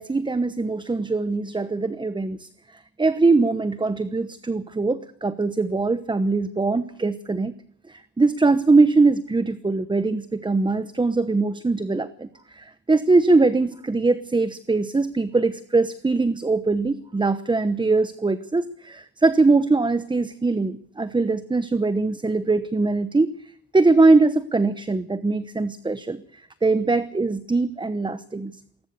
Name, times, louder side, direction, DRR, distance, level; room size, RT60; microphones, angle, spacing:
voice 1, 0.0-2.5 3.0-7.5 7.9-23.3 23.7-28.6, right 3 dB, 15° right, 13 dB, 1.0 m, -22 dB
21.0 x 19.5 x 6.8 m, 0.66 s
cardioid pair, 90°, 30 cm